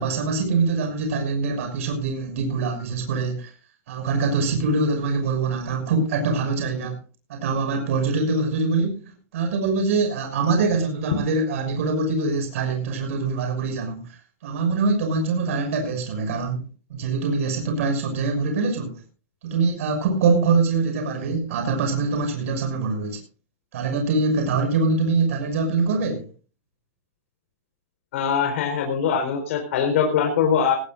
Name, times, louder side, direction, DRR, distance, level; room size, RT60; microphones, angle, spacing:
voice 1, 0.0-3.5 3.9-7.0 7.3-16.6 16.9-18.9 19.4-23.2 23.7-26.3, right 4 dB, 70° right, 4 dB, 6.2 m, -24 dB
voice 2, 28.1-30.8, left 7 dB, 65° left, 2 dB, 4.5 m, -22 dB
19.0 x 17.5 x 2.6 m, 0.36 s
supercardioid pair, 160°, 8 cm